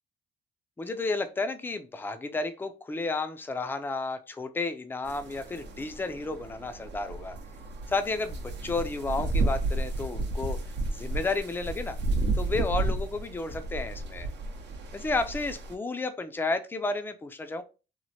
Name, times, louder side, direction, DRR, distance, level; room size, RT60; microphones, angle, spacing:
voice 1, 0.8-7.4 7.9-10.6 10.9-12.0 12.3-14.3 14.9-17.6, left 3 dB, 10° left, 9 dB, 0.4 m, -32 dB
sound 1, 5.0-15.7, right 2 dB, 60° right, 0.7 m, -32 dB
3.0 x 2.1 x 2.7 m, 0.31 s
cardioid pair, 90°, 20 cm